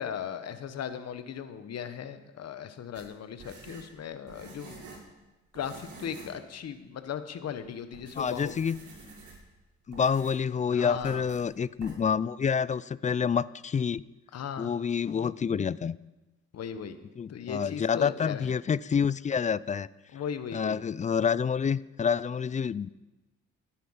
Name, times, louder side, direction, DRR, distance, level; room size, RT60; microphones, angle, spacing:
voice 1, 0.0-4.9 5.5-8.5 10.7-11.2 14.3-14.7 16.5-17.0 17.3-18.5 20.1-20.8, left 8 dB, 55° left, 10 dB, 1.1 m, -37 dB
sound 1, 2.9-5.1 5.5-6.4 6.7-6.8 7.5-7.6 7.9-9.5 9.9-10.5 11.0-11.4 11.8-11.9, right 3 dB, 70° right, 4.8 m, -48 dB
voice 2, 8.2-8.8 9.9-14.0 14.6-16.0 17.2-19.9 20.5-22.9, left 6 dB, 25° left, 20 dB, 0.3 m, -28 dB
13.5 x 10.0 x 5.7 m, 1.1 s
cardioid pair, 90°, 30 cm